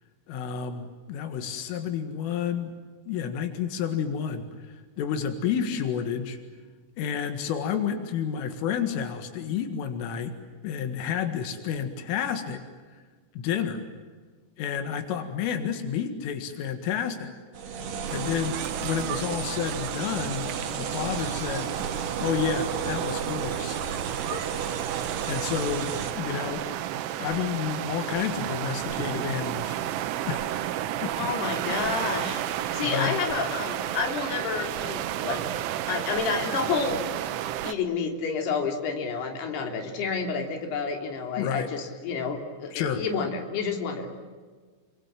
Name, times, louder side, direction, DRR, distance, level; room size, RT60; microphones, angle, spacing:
voice 1, 0.3-2.7 3.1-6.4 7.0-10.4 10.6-12.6 13.4-13.9 14.6-17.3 18.1-21.7 22.2-23.8 25.3-26.6 27.2-29.8 30.3-30.6 31.0-31.2 31.7-31.8 32.8-33.2 41.4-41.7 42.7-43.0, left 8 dB, 90° left, 7 dB, 4.4 m, -30 dB
sound 1, 17.5-26.1, right 6 dB, 60° right, 4.0 m, -33 dB
sound 2, 18.1-37.7, right 12 dB, 80° right, 3.6 m, -32 dB
voice 2, 24.3-24.8 31.2-32.4 32.7-35.4 35.9-37.0 37.6-44.1, left 5 dB, 60° left, 3 dB, 5.1 m, -30 dB
29.5 x 25.5 x 7.5 m, 1.5 s
omnidirectional pair, 5.6 m